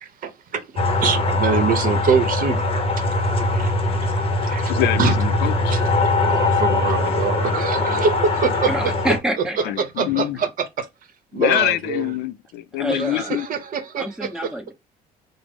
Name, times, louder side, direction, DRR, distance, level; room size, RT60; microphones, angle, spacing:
voice 1, 0.0-2.7 3.5-3.7 4.4-4.7 5.0-5.2 5.7-5.8 6.2-8.7 9.1-9.2 9.8-10.9 11.3-12.1 13.0-14.5, right 5 dB, 55° right, 0.8 m, -24 dB
sound 1, 0.8-9.2, left 2 dB, 35° left, 0.8 m, -21 dB
voice 2, 4.7-5.7 7.8-8.0 9.6-10.4 11.3-13.5, left 14 dB, 80° left, 0.4 m, -24 dB
voice 3, 8.6-9.6 12.8-13.4 14.0-14.7, right 1 dB, 5° right, 0.9 m, -27 dB
4.9 x 2.0 x 3.3 m
cardioid pair, 110°, 17 cm